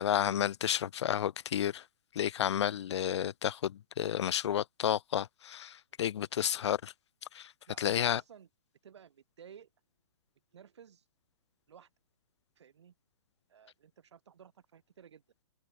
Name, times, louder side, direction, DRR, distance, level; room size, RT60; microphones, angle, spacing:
voice 1, 0.0-1.8 2.1-6.9 7.3-7.5 7.8-8.2, left 10 dB, 75° left, 0.4 m, -31 dB
voice 2, 7.7-8.5 8.8-9.7 10.5-11.0 11.7-11.9 12.6-12.9 13.5-15.2, right 8 dB, 75° right, 3.2 m, -55 dB
hypercardioid pair, 145°, 15 cm